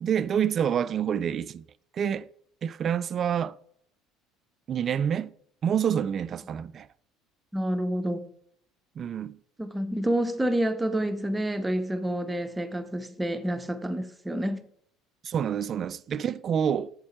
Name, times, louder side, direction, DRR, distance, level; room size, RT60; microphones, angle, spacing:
voice 1, 0.0-1.6 1.9-2.3 2.6-3.6 4.7-5.3 5.6-6.9 9.0-9.4 15.2-16.9, right 8 dB, 45° right, 0.4 m, -27 dB
voice 2, 7.5-8.3 9.6-14.6, right 1 dB, 15° right, 0.9 m, -28 dB
8.5 x 7.4 x 4.3 m
hypercardioid pair, 60°, 0 cm